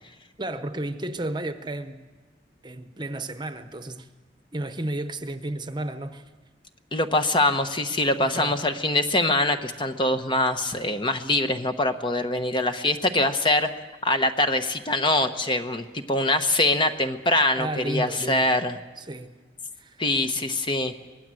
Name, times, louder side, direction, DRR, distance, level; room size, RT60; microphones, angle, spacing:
voice 1, 0.4-2.0 2.6-4.1 4.5-6.2 8.2-8.6 17.6-18.6 19.0-19.4 19.8-20.0, right 1 dB, 25° right, 1.0 m, -32 dB
voice 2, 6.9-13.7 14.0-18.8 20.0-20.9, left 2 dB, 25° left, 1.0 m, -23 dB
25.0 x 20.0 x 7.7 m
head